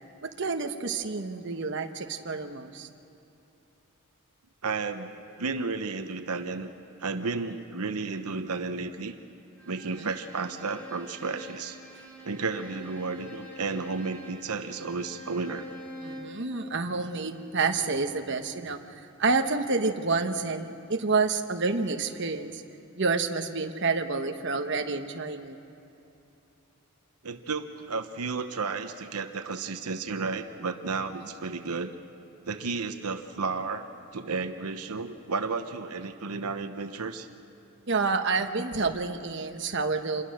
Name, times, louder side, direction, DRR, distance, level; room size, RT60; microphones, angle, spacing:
voice 1, 0.2-2.9 9.8-10.1 16.0-22.6 23.0-25.6 37.9-40.2, right 4 dB, 55° right, 5 dB, 1.1 m, -29 dB
voice 2, 4.6-6.7 7.0-9.1 9.6-11.8 12.2-15.7 27.2-31.9 32.5-33.9 34.1-37.3, right 4 dB, 90° right, 8 dB, 1.0 m, -32 dB
Bowed string instrument, 9.6-16.4, left 1 dB, 5° left, 3.2 m, -45 dB
26.5 x 21.0 x 6.5 m, 2.9 s
head